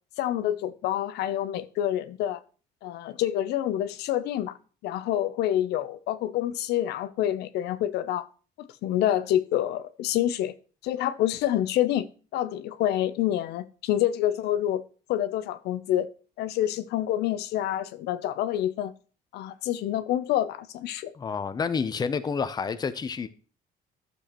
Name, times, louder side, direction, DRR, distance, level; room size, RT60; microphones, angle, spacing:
voice 1, 0.2-2.4 2.8-4.5 4.8-8.3 8.6-10.5 10.8-12.1 12.3-14.8 15.1-16.1 16.4-18.9 19.3-21.1, left 12 dB, 75° left, 0.6 m, -27 dB
voice 2, 21.1-23.3, left 5 dB, 25° left, 0.6 m, -29 dB
12.0 x 6.8 x 3.0 m
cardioid pair, 110°, 17 cm